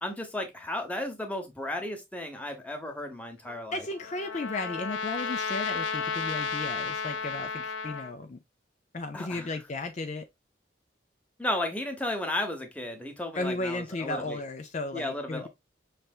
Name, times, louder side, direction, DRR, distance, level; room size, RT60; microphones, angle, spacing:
voice 1, 0.0-3.9 9.1-9.5 11.4-14.4 14.9-15.5, left 1 dB, 5° left, 1.0 m, -34 dB
Trumpet, 3.5-8.1, left 5 dB, 90° left, 0.6 m, -33 dB
voice 2, 3.7-8.4 8.9-10.3 13.3-15.5, left 2 dB, 40° left, 0.4 m, -34 dB
5.5 x 3.3 x 2.4 m
head